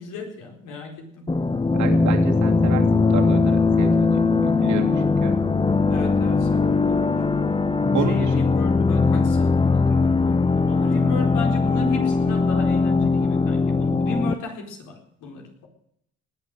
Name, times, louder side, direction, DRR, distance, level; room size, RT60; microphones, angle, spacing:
voice 1, 0.0-1.3 5.9-7.1 8.1-15.7, left 3 dB, 90° left, 2 dB, 4.3 m, -35 dB
sound 1, 1.3-14.3, left 4 dB, 15° left, 0.7 m, -20 dB
voice 2, 1.7-5.4 7.9-8.4, right 7 dB, 75° right, 3 dB, 2.9 m, -30 dB
19.5 x 8.5 x 7.8 m, 0.72 s
cardioid pair, 90°, 30 cm